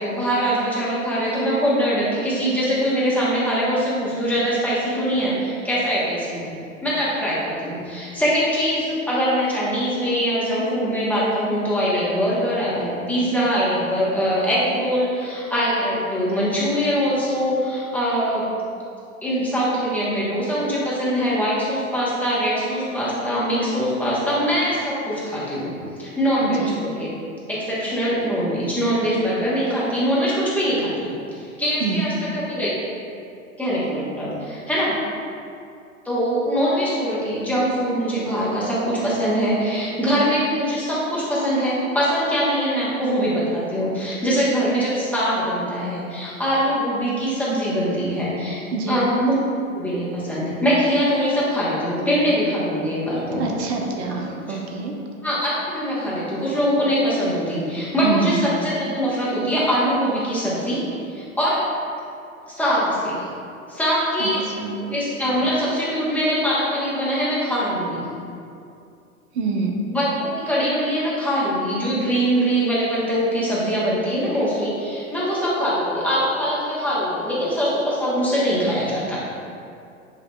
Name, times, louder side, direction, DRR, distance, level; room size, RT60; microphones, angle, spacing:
voice 1, 0.0-6.5 6.8-18.5 19.2-25.7 26.0-27.1 27.5-32.7 33.6-35.0 36.0-49.3 49.7-53.4 55.2-60.8 61.1-61.6 62.5-63.2 63.7-64.4 64.8-68.0 69.9-79.2, equal, 5° left, -9 dB, 1.0 m, -22 dB
voice 2, 26.4-26.8 31.8-32.1 48.7-49.1 53.4-54.9 58.0-58.4 64.2-64.8 69.3-69.8, right 4 dB, 50° right, 1 dB, 0.8 m, -26 dB
7.4 x 2.7 x 2.2 m, 2.5 s
figure-of-eight pair, 100°, 43 cm